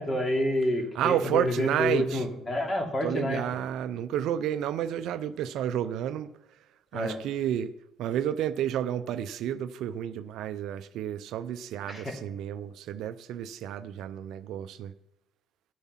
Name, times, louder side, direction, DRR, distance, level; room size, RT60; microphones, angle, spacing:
voice 1, 0.0-3.4 6.9-7.2 11.9-12.1, left 1 dB, 30° left, 3 dB, 2.7 m, -28 dB
voice 2, 0.9-2.3 3.0-6.3 6.9-7.7 8.0-14.9, right 10 dB, 70° right, 13 dB, 0.5 m, -31 dB
13.5 x 7.1 x 5.7 m, 0.86 s
hypercardioid pair, 60°, 0 cm